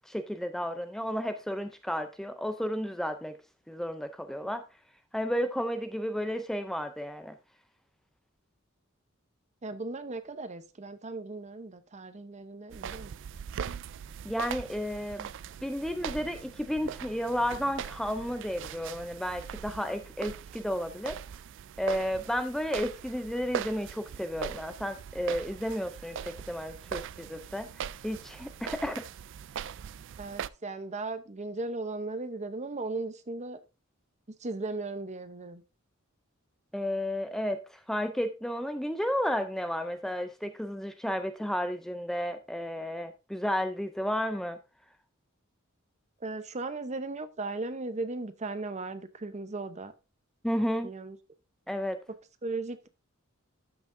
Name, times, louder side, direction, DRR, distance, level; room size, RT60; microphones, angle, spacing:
voice 1, 0.1-3.4 3.7-4.6 5.1-7.3 14.2-15.3 15.6-21.2 21.8-27.7 28.0-29.1 36.7-44.6 50.4-50.9 51.7-52.0, equal, ahead, 0.4 m, -32 dB
voice 2, 9.6-13.1 30.2-33.6 34.4-35.6 46.2-49.9 50.8-51.2 52.4-52.9, right 3 dB, 35° right, 0.8 m, -37 dB
sound 1, 12.7-30.5, right 8 dB, 60° right, 0.3 m, -41 dB
12.5 x 6.0 x 2.6 m
head